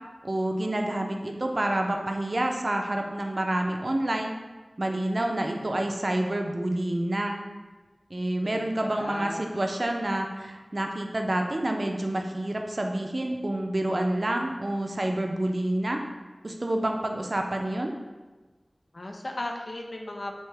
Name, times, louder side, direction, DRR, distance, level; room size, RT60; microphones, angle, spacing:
voice 1, 0.2-4.3 4.8-7.4 8.1-16.0 16.4-17.9, right 1 dB, 55° right, 3 dB, 0.4 m, -28 dB
voice 2, 8.3-9.5 18.9-20.3, left 1 dB, 75° left, 2 dB, 0.4 m, -36 dB
3.3 x 2.7 x 3.2 m, 1.3 s
wide cardioid pair, 50°, 0 cm